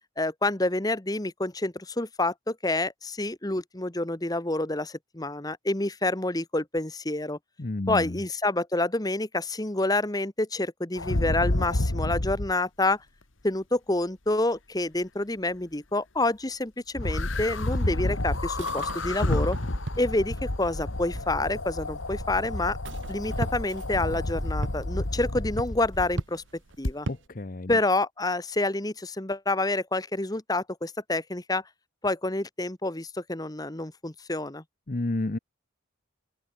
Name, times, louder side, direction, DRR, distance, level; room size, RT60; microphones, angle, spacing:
voice 1, 0.2-7.4 7.9-13.0 13.4-19.6 20.0-22.8 23.1-26.4 26.8-27.1 27.7-31.6 32.0-34.6, left 2 dB, 20° left, 1.2 m, -28 dB
voice 2, 7.6-8.2 27.1-27.8 34.9-35.4, left 2 dB, 40° left, 0.8 m, -31 dB
sound 1, 11.0-12.5 17.0-26.2 26.8-26.9, left 1 dB, 75° left, 1.9 m, -30 dB
sound 2, 18.0-27.3, right 2 dB, 65° right, 0.9 m, -39 dB
open air
head